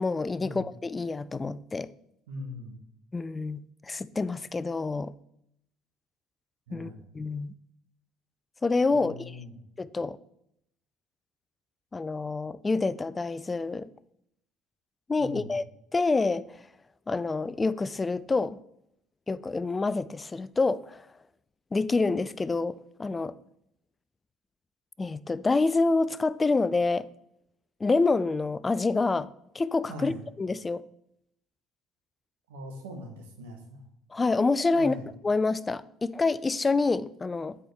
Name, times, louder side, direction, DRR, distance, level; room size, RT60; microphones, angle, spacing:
voice 1, 0.0-1.9 3.1-5.1 6.7-6.9 7.1-7.5 8.6-9.4 9.8-10.2 11.9-13.9 15.1-15.6 15.9-16.4 17.1-18.6 19.3-21.0 21.7-23.3 25.0-27.1 27.8-29.3 29.5-30.1 30.4-30.8 34.1-35.0 35.2-37.6, left 3 dB, 25° left, 0.3 m, -27 dB
voice 2, 2.3-2.8 6.7-7.0 8.9-9.6 15.2-15.5 29.9-30.2 32.5-33.8 34.7-35.0, left 1 dB, 85° right, 1.3 m, -40 dB
8.3 x 4.3 x 3.4 m
hypercardioid pair, 65°, 0 cm